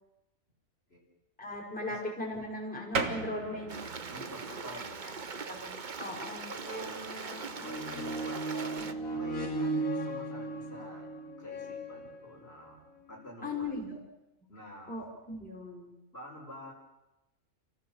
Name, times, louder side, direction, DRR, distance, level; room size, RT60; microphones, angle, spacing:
voice 1, 1.4-3.9 4.6-4.8 5.5-5.7 6.0-6.5 8.5-9.2 13.4-14.0 14.9-15.9, left 2 dB, 5° left, -4 dB, 5.9 m, -38 dB
sound 1, 2.9-13.1, right 4 dB, 75° right, 2.1 m, -43 dB
Stream, 3.7-8.9, right 5 dB, 40° right, 1.1 m, -41 dB
voice 2, 4.1-5.0 6.5-11.1 11.4-12.8 13.1-13.8 14.5-15.0 16.1-16.7, left 1 dB, 45° left, -2 dB, 5.5 m, -48 dB
sound 2, 6.6-12.5 13.2-13.3, right 2 dB, 85° left, 3.7 m, -37 dB
30.0 x 16.0 x 7.6 m, 0.98 s
omnidirectional pair, 1.4 m